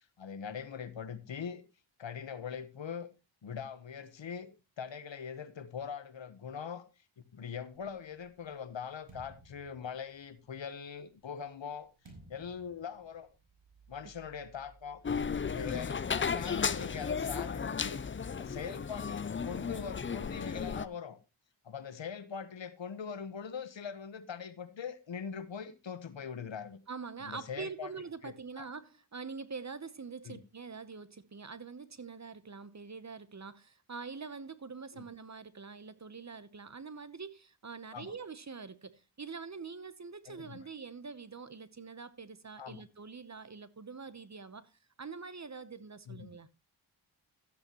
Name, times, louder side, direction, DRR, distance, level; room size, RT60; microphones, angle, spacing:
voice 1, 0.2-1.6 2.0-3.1 3.4-4.5 4.8-6.8 7.3-11.9 12.3-13.3 13.9-15.0 15.4-18.1 18.4-21.2 21.6-26.8 27.2-27.9 28.2-28.7 30.3-30.4 34.9-35.0 37.9-38.1 40.3-40.6 42.6-42.8 46.1-46.3, left 7 dB, 65° left, 1.2 m, -42 dB
sound 1, 7.7-10.6 11.3-18.3, right 2 dB, 60° right, 4.3 m, -58 dB
sound 2, 15.0-20.9, left 6 dB, 25° left, 0.5 m, -34 dB
voice 2, 26.9-46.5, right 5 dB, 35° right, 0.9 m, -45 dB
13.0 x 8.9 x 3.0 m
cardioid pair, 60°, 48 cm